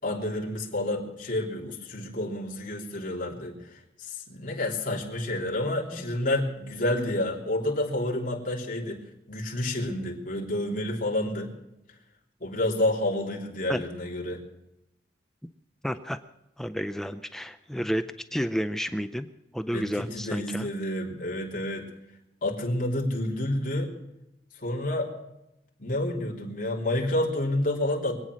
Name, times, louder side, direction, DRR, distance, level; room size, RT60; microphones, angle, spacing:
voice 1, 0.0-3.7 4.0-9.0 9.3-11.5 12.4-14.4 19.7-21.9 22.4-23.9 24.6-25.1 25.8-28.2, left 1 dB, 45° left, -2 dB, 3.4 m, -29 dB
voice 2, 15.8-16.2 16.6-19.3 19.5-20.7, equal, ahead, 9 dB, 0.5 m, -31 dB
24.0 x 9.1 x 6.2 m, 0.89 s
head